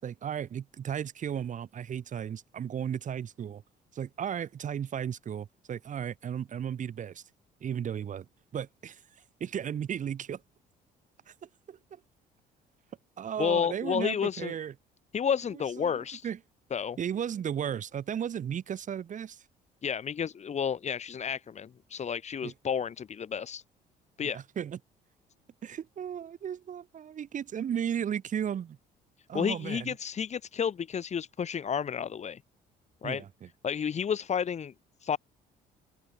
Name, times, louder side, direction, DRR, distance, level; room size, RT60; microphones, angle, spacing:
voice 1, 0.0-3.6 3.9-7.2 7.6-8.3 8.5-9.0 9.4-10.4 11.3-12.0 13.2-14.7 15.5-16.4 17.0-19.4 22.4-22.5 24.2-24.8 25.6-28.8 29.3-29.9 33.0-33.5, right 8 dB, 50° right, 6.7 m, -35 dB
voice 2, 13.4-14.5 15.1-16.3 16.7-17.0 19.8-23.6 24.2-24.4 29.3-32.4 33.0-33.2 33.6-34.7 35.0-35.2, left 7 dB, 40° left, 8.0 m, -31 dB
cardioid pair, 110°, 17 cm